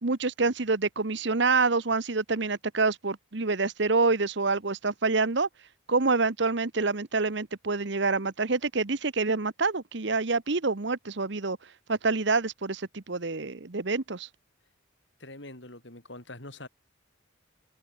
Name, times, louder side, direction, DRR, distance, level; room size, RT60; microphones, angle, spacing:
voice 1, 0.0-5.5 5.9-11.6 11.9-14.3, right 3 dB, 60° right, 1.0 m, -27 dB
voice 2, 15.2-16.7, left 2 dB, 60° left, 4.5 m, -44 dB
head